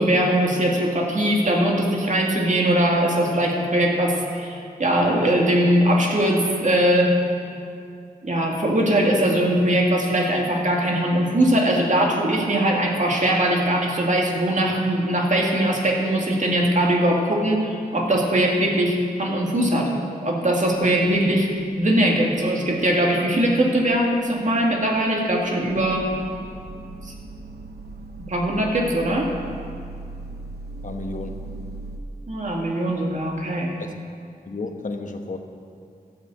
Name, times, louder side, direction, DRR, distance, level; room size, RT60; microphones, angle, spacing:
voice 1, 0.0-7.1 8.2-19.9 20.2-21.5 21.8-26.1 27.0-27.1 28.1-29.3 32.3-33.7, right 1 dB, 50° right, -1 dB, 2.2 m, -21 dB
sound 1, 21.0-21.5 21.7-22.1 22.4-22.5 22.8-22.9 23.6-32.0, right 3 dB, 85° right, 0.8 m, -39 dB
voice 2, 30.8-31.5 33.8-34.0 34.5-35.4, left 3 dB, 55° left, 4 dB, 1.1 m, -32 dB
13.5 x 7.5 x 7.7 m, 2.4 s
wide cardioid pair, 110°, 16 cm